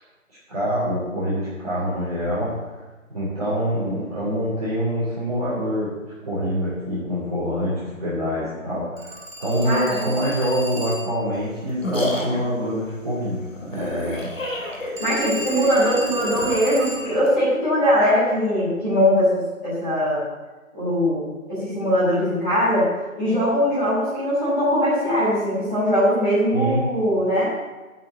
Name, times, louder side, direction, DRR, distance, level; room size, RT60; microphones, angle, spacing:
voice 1, 0.5-2.5 3.1-6.0 6.2-9.1 9.4-14.3 26.5-26.9, equal, 30° right, -10 dB, 3.0 m, -25 dB
Telephone, 9.0-11.3 15.0-17.2, right 1 dB, 65° right, 4.0 m, -34 dB
voice 2, 9.6-10.1 15.0-20.2 20.7-22.8 23.2-27.5, equal, 5° left, -18 dB, 1.6 m, -21 dB
sound 1, 11.3-17.4, left 1 dB, 65° left, 2.6 m, -31 dB
9.0 x 5.7 x 8.0 m, 1.2 s
figure-of-eight pair, 170°, 41 cm